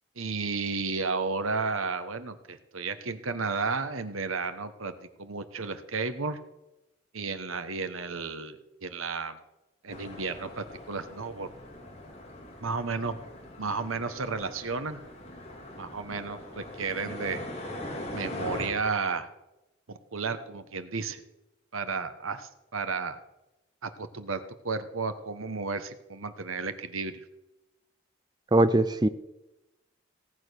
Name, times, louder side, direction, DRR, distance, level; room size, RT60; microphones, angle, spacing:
voice 1, 0.2-4.9 5.2-6.4 7.1-9.4 9.8-11.5 12.6-13.2 13.6-15.0 15.8-17.4 18.1-19.3 19.9-21.2 21.7-23.2 23.8-27.2, right 4 dB, 90° right, 10 dB, 1.3 m, -33 dB
sound 1, 9.9-18.7, left 1 dB, 30° left, 2.8 m, -41 dB
voice 2, 28.5-29.1, right 2 dB, 20° right, 12 dB, 0.5 m, -21 dB
17.5 x 8.8 x 6.4 m, 0.96 s
head